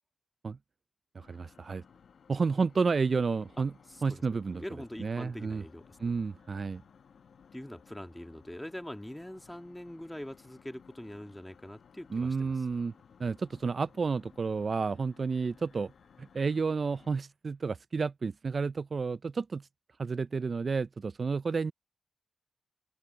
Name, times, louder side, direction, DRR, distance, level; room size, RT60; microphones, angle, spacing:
voice 1, 1.1-1.8 2.3-3.7 4.0-4.6 5.0-5.6 6.0-6.8 12.1-12.9 13.2-15.9 16.2-19.7 20.0-21.7, right 4 dB, 55° right, 0.3 m, -31 dB
sound 1, 1.2-17.1, left 6 dB, 75° left, 1.2 m, -59 dB
voice 2, 3.9-6.2 7.5-12.6, left 1 dB, 10° left, 2.5 m, -44 dB
open air
cardioid pair, 55°, 0 cm